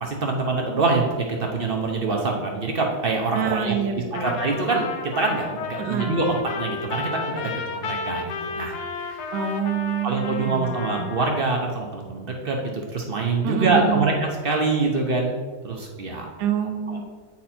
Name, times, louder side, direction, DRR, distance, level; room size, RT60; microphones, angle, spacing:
voice 1, 0.0-9.2 10.0-15.4 15.6-16.3, right 3 dB, 50° right, 1 dB, 0.7 m, -25 dB
voice 2, 3.3-4.3 5.8-6.1 9.3-10.7 11.0-11.1 13.4-14.1 16.4-17.0, right 8 dB, 75° right, 6 dB, 1.3 m, -26 dB
Trumpet, 4.1-11.5, left 4 dB, 75° left, 1.2 m, -33 dB
8.6 x 4.2 x 4.2 m, 1.5 s
omnidirectional pair, 1.8 m